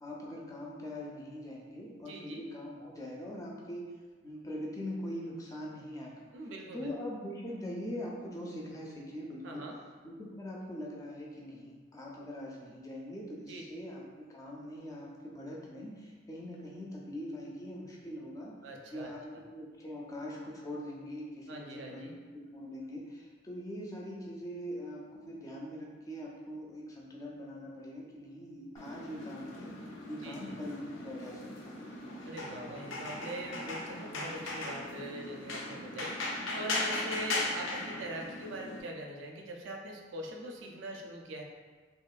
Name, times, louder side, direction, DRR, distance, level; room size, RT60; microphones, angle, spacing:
voice 1, 0.0-3.8 4.2-6.2 6.7-9.6 10.0-18.5 18.9-19.2 19.5-22.1 22.5-29.7 30.1-31.8, equal, 20° left, -3 dB, 0.3 m, -42 dB
voice 2, 2.0-2.4 6.3-6.9 9.4-9.8 13.4-13.6 18.6-19.4 21.5-22.1 30.1-30.6 32.2-41.4, right 1 dB, 80° right, 1 dB, 0.4 m, -42 dB
sound 1, 28.8-38.8, left 2 dB, 90° left, 0.4 m, -38 dB
2.8 x 2.3 x 2.3 m, 1.4 s
head